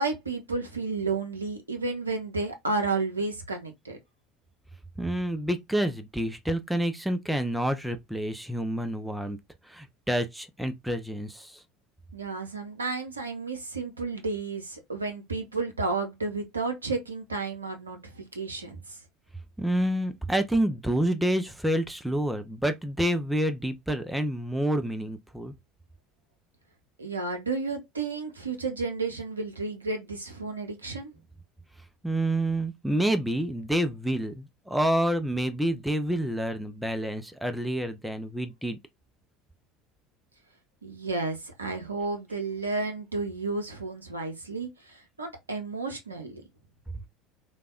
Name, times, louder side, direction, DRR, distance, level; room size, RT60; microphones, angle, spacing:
voice 1, 0.0-4.0 12.1-19.0 27.0-31.1 40.8-46.4, right 3 dB, 85° right, 0.6 m, -32 dB
voice 2, 5.0-9.4 9.7-11.6 19.6-25.5 32.0-38.8 46.9-47.0, right 1 dB, 5° right, 0.5 m, -28 dB
3.3 x 2.2 x 2.3 m
figure-of-eight pair, 65°, 0 cm